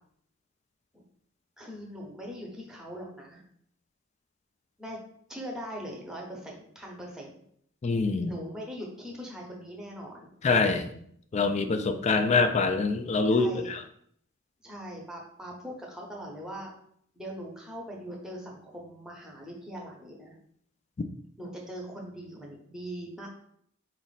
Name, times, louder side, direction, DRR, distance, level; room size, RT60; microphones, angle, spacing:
voice 1, 1.6-3.4 4.8-5.0 5.3-7.4 8.2-10.3 13.3-13.7 14.6-16.7 17.1-20.4 21.4-23.3, equal, 5° right, -1 dB, 0.7 m, -41 dB
voice 2, 7.8-8.3 10.4-11.0 11.3-13.8, left 4 dB, 35° left, 8 dB, 0.3 m, -25 dB
4.0 x 2.4 x 4.0 m, 0.66 s
head